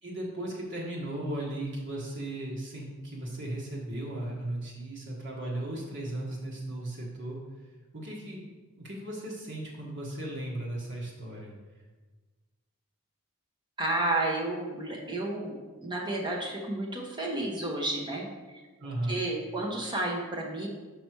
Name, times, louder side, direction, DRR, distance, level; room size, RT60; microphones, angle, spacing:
voice 1, 0.0-7.4 7.9-8.4 8.7-11.5 18.8-19.2, right 1 dB, 55° right, -3 dB, 1.5 m, -36 dB
voice 2, 13.8-18.6 19.1-20.7, right 2 dB, 20° right, -2 dB, 0.9 m, -31 dB
5.9 x 5.5 x 4.6 m, 1.3 s
head